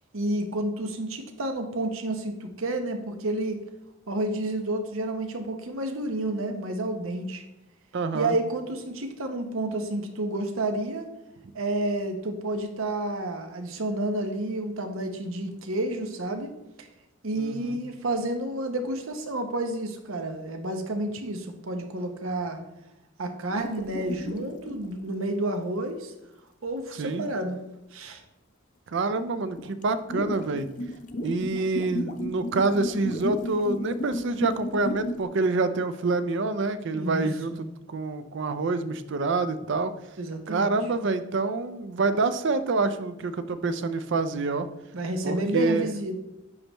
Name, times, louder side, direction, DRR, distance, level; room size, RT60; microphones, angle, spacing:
voice 1, 0.1-3.6 4.1-7.4 8.1-11.1 11.5-16.5 16.8-16.9 17.2-22.6 23.2-26.1 26.6-27.6 27.9-28.2 36.9-37.6 40.2-40.7 44.9-46.2, right 1 dB, 80° right, 6 dB, 0.8 m, -30 dB
voice 2, 7.9-8.3 17.4-17.8 27.0-27.2 28.9-30.7 31.2-39.9 40.5-44.7 45.2-45.9, right 3 dB, 60° right, 12 dB, 0.5 m, -27 dB
sound 1, 23.5-25.1 26.7-26.8 29.1-29.2 29.4-35.2, left 1 dB, 40° left, 0.5 m, -33 dB
9.5 x 3.4 x 3.0 m, 0.92 s
head